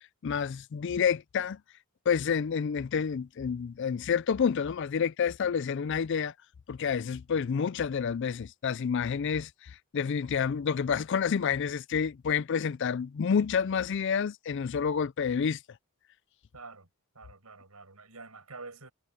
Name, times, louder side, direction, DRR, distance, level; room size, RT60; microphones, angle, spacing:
voice 1, 0.2-1.6 2.1-6.3 6.7-15.6, left 6 dB, 55° left, 0.4 m, -29 dB
voice 2, 16.5-16.9 17.1-18.9, right 3 dB, 85° right, 6.8 m, -47 dB
head